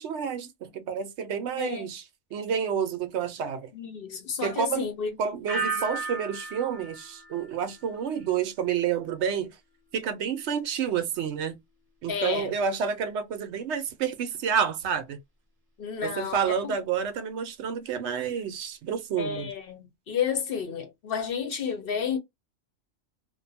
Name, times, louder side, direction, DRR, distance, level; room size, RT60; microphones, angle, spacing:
voice 1, 0.0-2.0 2.3-3.7 4.4-4.8 5.2-9.6 9.9-11.6 12.0-15.2 16.0-19.5, right 7 dB, 65° right, 0.8 m, -29 dB
voice 2, 1.6-1.9 3.7-5.1 5.7-5.9 12.1-12.5 15.8-16.7 19.2-22.2, left 7 dB, 50° left, 0.9 m, -31 dB
sound 1, 5.5-8.3 8.6-9.1, right 4 dB, 20° right, 0.8 m, -35 dB
2.5 x 2.2 x 2.6 m
omnidirectional pair, 1.4 m